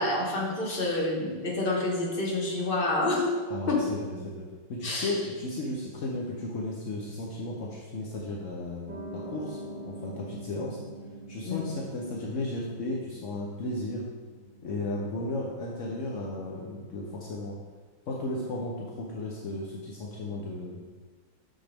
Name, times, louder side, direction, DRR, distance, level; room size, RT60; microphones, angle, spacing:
voice 1, 0.0-3.3 3.7-3.8 4.8-5.1 11.4-11.6, left 2 dB, 35° left, -2 dB, 1.1 m, -28 dB
voice 2, 3.5-9.6 9.9-10.8 11.3-14.1 14.6-17.6 18.1-20.8, left 2 dB, 65° left, -3 dB, 0.7 m, -34 dB
Piano, 8.9-15.4, right 2 dB, 65° right, 1.8 m, -44 dB
6.4 x 6.0 x 3.4 m, 1.3 s
omnidirectional pair, 2.3 m